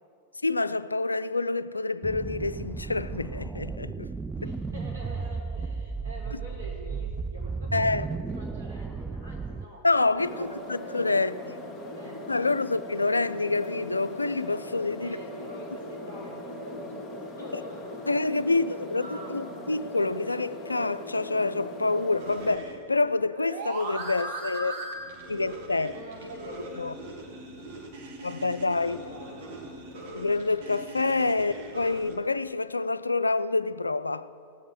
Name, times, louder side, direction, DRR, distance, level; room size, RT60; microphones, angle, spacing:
voice 1, 0.4-4.1 4.4-4.5 7.7-8.1 9.8-11.3 12.3-15.2 18.1-24.9 25.3-25.9 26.8-26.9 28.2-29.0 30.1-34.3, left 3 dB, 80° left, 0.3 m, -27 dB
sound 1, 2.0-9.6, right 4 dB, 10° right, 0.3 m, -34 dB
voice 2, 4.4-9.9 10.1-12.6 15.0-18.1 18.5-18.6 18.9-19.4 25.9-27.0 28.8-29.7 31.3-31.4, equal, 90° right, 3.8 m, -45 dB
sound 2, 10.2-22.6, left 1 dB, 10° left, 1.6 m, -40 dB
sound 3, 22.2-32.1, right 1 dB, 55° right, 1.7 m, -40 dB
18.5 x 7.3 x 6.5 m
figure-of-eight pair, 90°, 0 cm